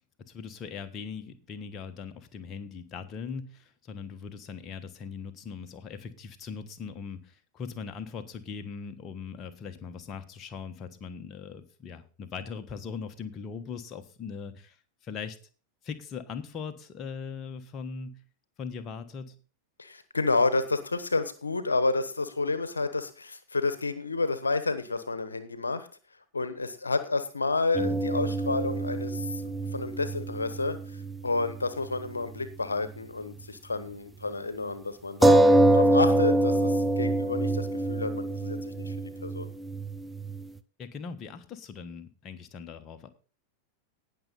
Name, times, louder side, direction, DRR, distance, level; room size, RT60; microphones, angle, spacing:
voice 1, 0.2-14.8 15.0-15.4 15.8-18.2 18.6-19.4 27.8-28.0 40.8-43.1, left 5 dB, 30° left, 7 dB, 1.3 m, -40 dB
voice 2, 19.8-25.9 26.3-35.4 35.7-39.0 39.2-39.5, left 3 dB, 75° left, 13 dB, 1.0 m, -30 dB
sound 1, 27.7-31.6 31.9-32.0 35.2-40.4, right 1 dB, 5° right, 0.7 m, -25 dB
18.5 x 6.7 x 4.1 m, 0.37 s
figure-of-eight pair, 90°, 0 cm